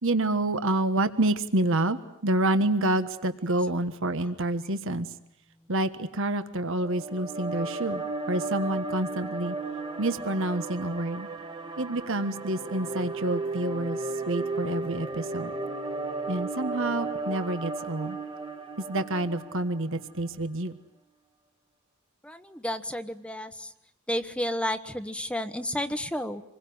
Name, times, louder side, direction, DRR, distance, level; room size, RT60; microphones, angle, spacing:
voice 1, 0.0-5.1 5.7-9.6 10.0-11.3 11.8-15.5 16.3-18.2 18.8-20.8, right 2 dB, 65° right, 10 dB, 1.5 m, -28 dB
sound 1, 6.7-20.1, right 2 dB, 20° right, 1.5 m, -35 dB
voice 2, 22.2-23.7 24.1-26.4, equal, 5° left, 9 dB, 1.1 m, -31 dB
27.0 x 22.0 x 9.5 m, 0.75 s
head